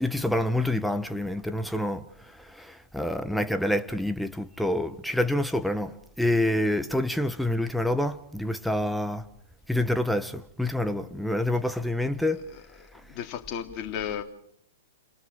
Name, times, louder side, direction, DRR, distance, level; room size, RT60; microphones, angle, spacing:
voice 1, 0.0-9.2 9.7-12.4, left 1 dB, ahead, 1.0 m, -27 dB
voice 2, 12.2-12.6 13.1-14.2, left 9 dB, 35° left, 3.4 m, -34 dB
30.0 x 27.5 x 4.8 m
figure-of-eight pair, 110°, 0 cm